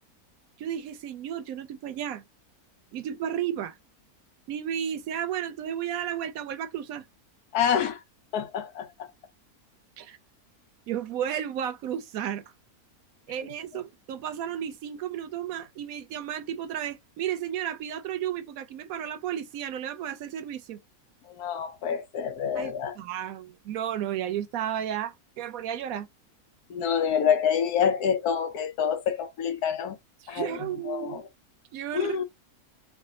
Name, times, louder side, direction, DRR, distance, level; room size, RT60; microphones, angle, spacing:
voice 1, 0.6-2.2 2.9-3.8 4.5-7.1 10.0-10.2 10.9-12.4 13.3-20.8 22.6-26.1 30.2-31.2 31.7-32.2, right 10 dB, 70° right, 1.0 m, -33 dB
voice 2, 7.5-8.0 8.3-9.1 13.4-13.5 21.4-23.0 26.7-30.0 30.3-31.2 31.9-32.2, left 7 dB, 80° left, 1.2 m, -27 dB
3.3 x 2.4 x 3.6 m
omnidirectional pair, 1.6 m